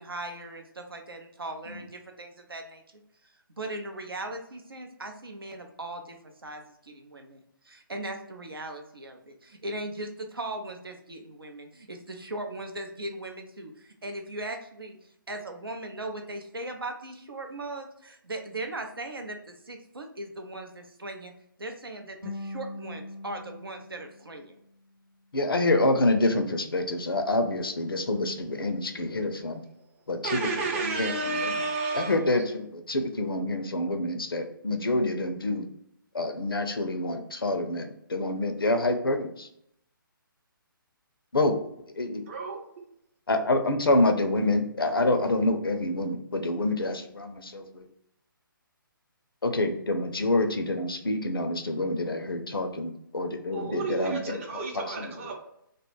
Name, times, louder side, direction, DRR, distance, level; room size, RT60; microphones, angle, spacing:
voice 1, 0.0-2.8 3.6-6.2 6.4-7.4 7.7-13.7 14.0-15.0 15.3-21.3 21.6-24.5, right 2 dB, 85° right, 4 dB, 0.5 m, -38 dB
sound 1, 22.2-25.3, left 2 dB, 65° right, 0.9 m, -42 dB
voice 2, 25.3-29.6 30.1-31.5 31.9-35.7 36.1-39.5 41.3-41.6 42.0-42.2 43.3-47.9 49.4-54.4 54.7-55.1, left 2 dB, 80° left, 6 dB, 0.5 m, -27 dB
voice 3, 30.2-32.2 42.3-42.6 53.5-55.4, right 3 dB, 35° right, 1 dB, 0.6 m, -31 dB
2.2 x 2.0 x 3.0 m, 0.75 s
figure-of-eight pair, 140°, 12 cm